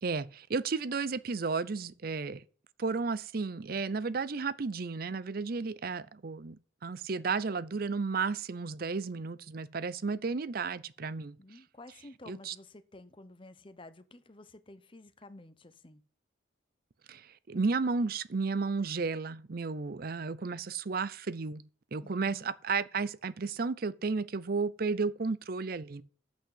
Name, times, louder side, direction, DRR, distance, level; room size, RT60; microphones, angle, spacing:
voice 1, 0.0-2.4 2.8-6.6 6.8-11.4 12.3-12.5 17.1-21.6 21.9-26.0, right 4 dB, 50° right, 0.5 m, -33 dB
voice 2, 11.4-16.0 22.0-22.5, left 2 dB, 25° left, 0.8 m, -52 dB
8.3 x 6.3 x 7.8 m
head